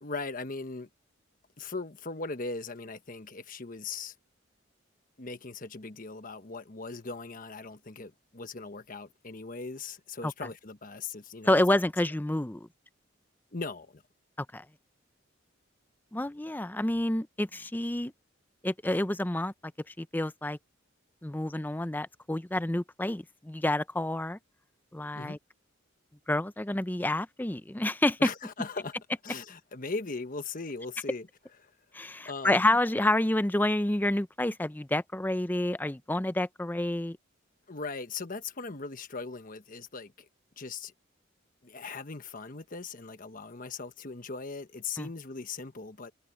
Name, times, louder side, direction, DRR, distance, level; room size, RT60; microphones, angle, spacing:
voice 1, 0.0-0.9 1.6-4.1 5.2-11.6 13.5-14.0 25.1-25.4 28.2-29.0 29.2-31.3 31.6-31.7 32.2-32.8 37.7-40.3 40.6-40.9 41.6-46.1, left 4 dB, 45° left, 1.3 m, -39 dB
voice 2, 11.5-12.7 14.4-14.6 16.1-18.1 18.6-19.5 19.9-20.6 21.2-24.4 24.9-25.4 26.3-28.3 31.9-37.2 45.0-45.1, left 1 dB, 10° left, 0.5 m, -28 dB
head